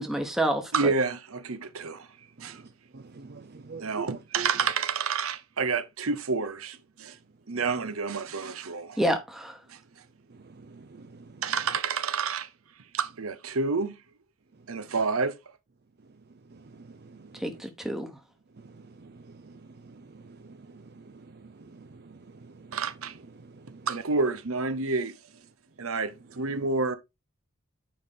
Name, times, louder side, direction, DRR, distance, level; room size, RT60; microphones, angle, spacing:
voice 1, 0.0-0.9 9.0-9.6 17.4-18.1, right 1 dB, ahead, 1.1 m, -28 dB
voice 2, 0.7-2.1 2.4-2.6 3.8-7.2 7.5-9.0 9.7-9.8 11.4-12.5 12.9-14.0 14.7-15.4 22.7-23.2 23.9-25.2 25.8-26.9, right 4 dB, 75° right, 0.9 m, -29 dB
voice 3, 2.4-4.5 10.3-11.4 16.5-17.6 18.6-22.8 23.4-23.9, right 4 dB, 50° right, 0.5 m, -47 dB
8.9 x 5.3 x 3.7 m
head